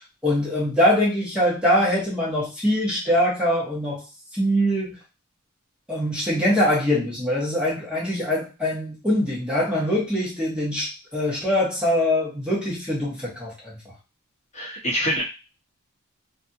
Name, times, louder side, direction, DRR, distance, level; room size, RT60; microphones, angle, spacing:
voice 1, 0.2-4.0 4.3-5.0 5.9-13.8, left 1 dB, 5° right, -6 dB, 1.2 m, -23 dB
voice 2, 14.5-15.2, equal, 30° left, -3 dB, 1.1 m, -25 dB
3.2 x 2.6 x 2.7 m, 0.29 s
head